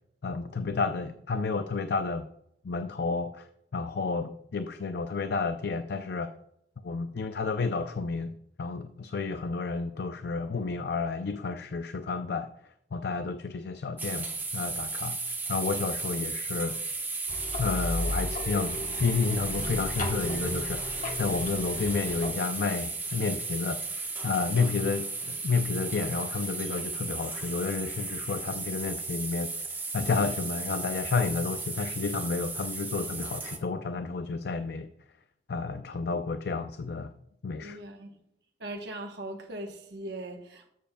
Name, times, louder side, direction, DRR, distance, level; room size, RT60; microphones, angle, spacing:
voice 1, 0.2-2.3 2.6-3.5 3.7-6.3 6.8-8.3 8.6-12.5 12.9-14.3 14.5-15.2 15.5-16.8 17.6-29.7 29.9-34.9 35.5-37.1 37.4-37.8, left 4 dB, 65° left, 0.5 m, -31 dB
sound 1, 14.0-33.6, right 3 dB, 10° right, 1.1 m, -35 dB
sound 2, 17.3-22.3, left 2 dB, 50° left, 1.1 m, -35 dB
voice 2, 37.6-38.2 38.6-40.7, right 1 dB, 70° right, 1.1 m, -40 dB
13.5 x 7.6 x 2.3 m
head